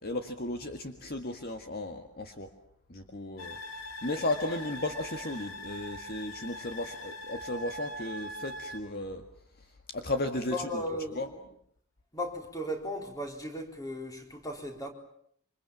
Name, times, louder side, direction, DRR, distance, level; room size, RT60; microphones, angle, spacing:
voice 1, 0.0-2.5 2.9-3.6 4.0-9.2 9.9-10.8 11.2-11.3, left 2 dB, 45° left, 1.9 m, -35 dB
sound 1, 3.4-8.8, equal, 65° left, 4.1 m, -42 dB
voice 2, 10.5-11.3 12.1-14.9, left 1 dB, 15° left, 4.4 m, -36 dB
27.5 x 26.5 x 7.2 m
head